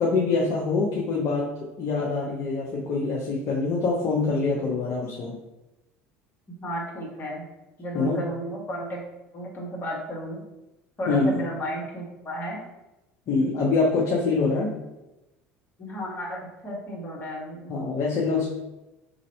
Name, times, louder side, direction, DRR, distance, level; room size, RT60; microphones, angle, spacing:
voice 1, 0.0-5.3 7.9-8.2 11.1-11.4 13.3-14.7 17.7-18.5, left 3 dB, 45° left, -3 dB, 0.7 m, -25 dB
voice 2, 6.6-7.4 7.8-9.0 9.3-10.4 11.0-12.6 15.8-17.8, equal, 25° left, -3 dB, 1.4 m, -33 dB
3.1 x 2.7 x 4.0 m, 0.97 s
figure-of-eight pair, 65°, 7 cm